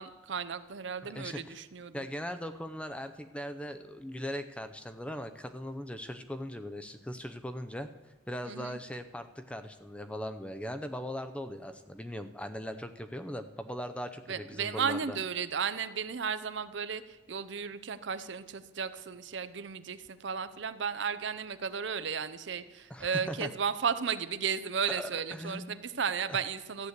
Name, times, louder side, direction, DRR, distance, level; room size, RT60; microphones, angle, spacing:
voice 1, 0.0-2.1 8.5-8.8 14.3-26.9, right 6 dB, 70° right, 13 dB, 0.6 m, -34 dB
voice 2, 1.1-1.6 1.9-7.9 8.3-15.2 22.9-23.5 24.9-25.8 26.3-26.4, equal, 5° left, 9 dB, 0.5 m, -39 dB
13.5 x 8.2 x 8.1 m, 1.1 s
head